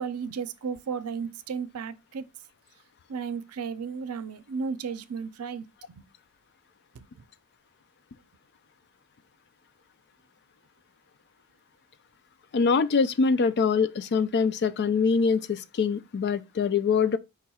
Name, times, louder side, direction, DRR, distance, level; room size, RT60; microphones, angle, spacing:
voice 1, 0.0-2.3 3.1-6.1 6.9-7.2, right 6 dB, 85° right, 0.5 m, -34 dB
voice 2, 12.5-17.2, left 5 dB, 50° left, 0.4 m, -24 dB
4.8 x 2.3 x 4.1 m
head